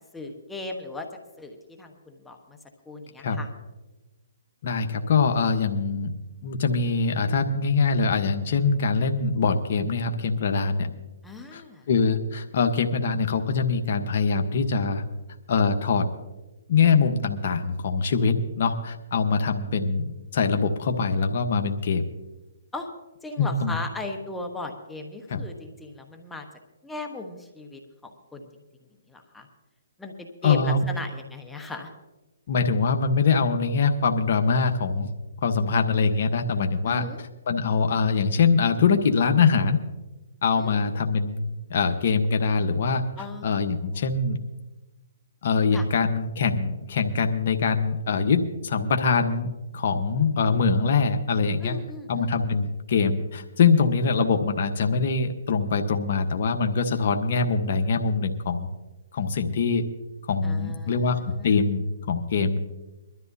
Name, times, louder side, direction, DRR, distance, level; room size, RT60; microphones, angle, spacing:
voice 1, 0.1-1.1 1.4-2.6 2.9-3.5 11.2-11.9 22.7-22.9 23.2-26.5 26.8-28.5 29.1-29.5 30.0-31.9 36.9-37.2 40.6-40.8 43.2-43.7 45.7-45.9 51.6-52.6 60.4-61.8, left 2 dB, 5° left, 3 dB, 1.2 m, -38 dB
voice 2, 4.6-6.1 6.4-10.9 11.5-15.0 15.5-16.1 16.7-22.0 23.4-23.8 25.3-25.4 30.4-30.9 32.5-35.1 35.4-37.0 37.5-39.8 40.4-43.0 43.4-44.4 45.4-51.8 52.1-58.7 59.1-59.9 60.3-62.6, left 5 dB, 55° left, 5 dB, 1.1 m, -23 dB
22.0 x 13.0 x 2.8 m, 1.1 s
hypercardioid pair, 145°, 0 cm